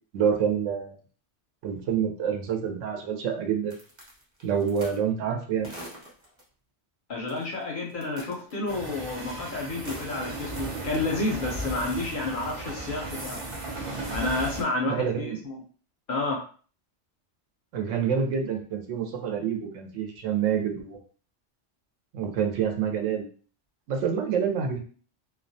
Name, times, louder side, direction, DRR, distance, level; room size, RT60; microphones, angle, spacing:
voice 1, 0.1-1.0 1.6-3.7 4.4-5.7 14.9-15.4 17.7-21.0 22.1-23.3 23.9-24.8, right 7 dB, 90° right, 3 dB, 0.9 m, -27 dB
sound 1, 3.7-5.0 5.6-6.4 7.3-7.6 7.9-9.4 9.6-11.1 11.9-12.2, right 1 dB, 30° right, 0.8 m, -43 dB
voice 2, 7.1-13.4 14.1-15.6 16.1-16.4, left 2 dB, 60° left, -1 dB, 0.6 m, -30 dB
sound 2, 8.7-14.6, right 2 dB, 55° right, 0.3 m, -36 dB
2.3 x 2.1 x 2.6 m, 0.42 s
omnidirectional pair, 1.2 m